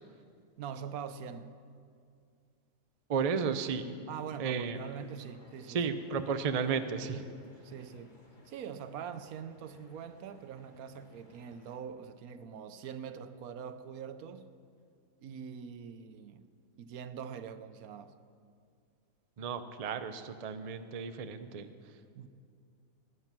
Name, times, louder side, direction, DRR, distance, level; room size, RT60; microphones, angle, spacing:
voice 1, 0.6-1.5 4.1-5.8 7.6-8.2 8.5-14.5 15.2-16.4 16.8-18.1 22.1-22.3, right 7 dB, 85° right, 1.2 m, -43 dB
voice 2, 3.1-3.9 4.4-4.8 5.7-7.2 19.4-22.0, right 6 dB, 40° right, 0.5 m, -33 dB
sound 1, 4.8-11.8, left 2 dB, 35° left, 1.5 m, -61 dB
18.5 x 9.6 x 6.0 m
omnidirectional pair, 1.5 m